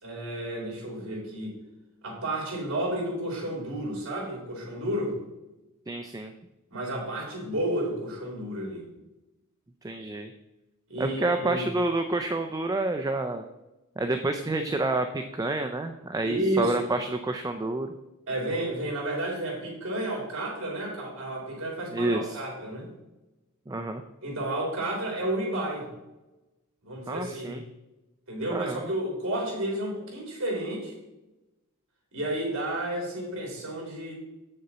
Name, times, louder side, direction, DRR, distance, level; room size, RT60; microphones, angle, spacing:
voice 1, 0.0-1.5 2.0-5.2 6.7-8.8 10.9-11.7 16.2-16.8 18.3-22.9 24.2-25.9 26.8-27.6 28.3-30.9 32.1-34.1, right 1 dB, 65° right, -2 dB, 3.2 m, -31 dB
voice 2, 5.9-6.3 9.8-10.3 11.0-13.4 14.0-17.9 21.9-22.4 23.7-24.0 27.1-27.6 28.5-28.8, right 2 dB, 15° right, 7 dB, 0.4 m, -29 dB
7.9 x 6.7 x 4.1 m, 1.0 s
head